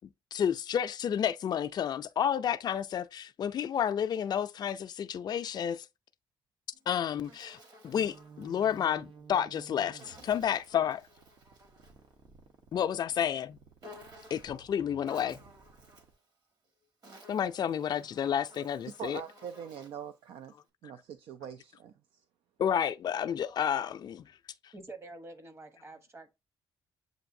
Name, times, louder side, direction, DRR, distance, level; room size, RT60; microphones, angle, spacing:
voice 1, 0.4-3.0 3.4-4.8 5.1-5.7 6.9-7.3 7.9-8.1 8.4-9.0 9.3-9.9 10.3-11.0 12.7-13.5 14.3-15.3 17.3-19.2 22.6-23.9, left 9 dB, 50° left, 0.3 m, -30 dB
Insect, 6.7-8.9 10.0-12.1 13.8-14.6 15.0-16.2 16.8-20.1, left 1 dB, 45° right, 1.6 m, -54 dB
sound 1, 7.9-16.1, right 5 dB, 70° right, 1.0 m, -55 dB
voice 2, 19.0-20.5 20.8-22.2, right 8 dB, 85° right, 0.4 m, -43 dB
voice 3, 24.7-26.4, right 2 dB, 30° right, 1.0 m, -47 dB
7.6 x 2.6 x 2.6 m
cardioid pair, 95°, 9 cm